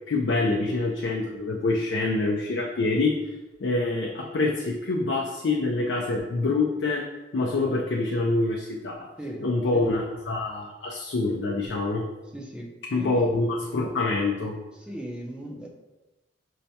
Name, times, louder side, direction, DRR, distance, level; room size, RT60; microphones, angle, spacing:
voice 1, 0.1-3.2 3.6-7.1 7.3-9.1 9.4-12.1 12.9-14.6, left 3 dB, 75° left, -1 dB, 0.4 m, -26 dB
voice 2, 12.3-13.2 14.8-15.7, equal, 5° right, -1 dB, 0.5 m, -38 dB
5.4 x 2.2 x 2.7 m, 1.1 s
head